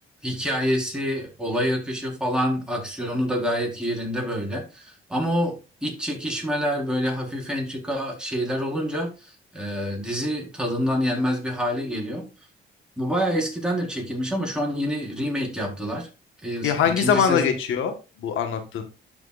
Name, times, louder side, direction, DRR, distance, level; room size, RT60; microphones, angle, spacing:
voice 1, 0.2-5.6 5.8-12.3 13.0-16.1 16.4-17.5, equal, 5° right, -1 dB, 4.3 m, -27 dB
voice 2, 16.6-17.9 18.2-18.8, left 7 dB, 80° left, 7 dB, 1.4 m, -22 dB
12.0 x 6.2 x 2.5 m, 0.29 s
cardioid pair, 90°, 20 cm